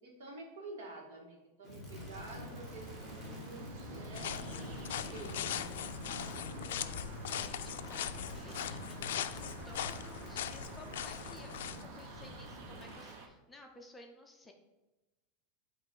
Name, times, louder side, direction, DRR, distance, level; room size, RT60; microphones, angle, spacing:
voice 1, 0.0-3.7 4.0-4.4 4.9-6.4, right 2 dB, 75° right, 0 dB, 1.9 m, -49 dB
Crackle, 1.6-13.2, left 1 dB, 15° right, 1.4 m, -46 dB
sound 1, 2.2-13.3, right 4 dB, 45° right, 0.8 m, -52 dB
sound 2, 4.1-11.8, left 11 dB, 90° left, 0.3 m, -40 dB
voice 2, 7.3-14.5, left 2 dB, 10° left, 2 dB, 0.5 m, -55 dB
7.5 x 3.1 x 5.4 m, 1.1 s
supercardioid pair, 175°, 0 cm